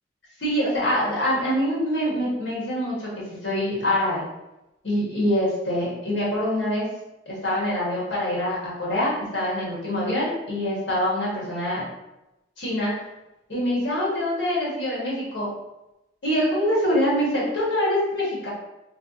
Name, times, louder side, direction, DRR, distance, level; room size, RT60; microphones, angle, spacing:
voice 1, 0.4-4.2 4.8-6.9 7.2-11.9 12.6-12.9 13.5-15.5 16.2-18.5, equal, 70° left, -6 dB, 1.5 m, -25 dB
3.3 x 2.1 x 4.0 m, 0.95 s
head